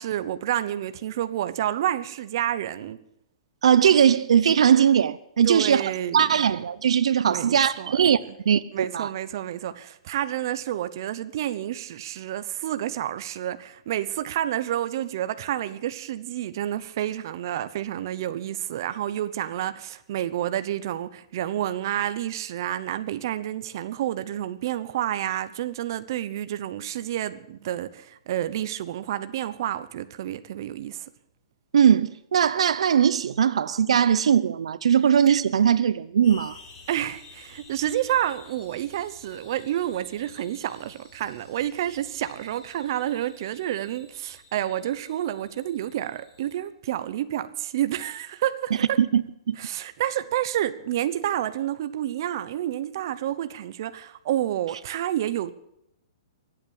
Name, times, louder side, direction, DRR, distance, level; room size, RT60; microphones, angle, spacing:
voice 1, 0.0-3.0 5.4-6.3 7.3-8.0 8.3-8.4 8.7-31.1 36.9-49.0 49.6-55.5, right 12 dB, 40° right, 0.9 m, -29 dB
voice 2, 3.6-5.8 6.1-9.1 31.7-36.6 49.0-49.2 49.5-49.6, right 8 dB, 75° right, 0.7 m, -20 dB
sound 1, 36.2-46.6, left 4 dB, 25° left, 4.0 m, -51 dB
23.5 x 8.6 x 7.1 m
hypercardioid pair, 175°, 3 cm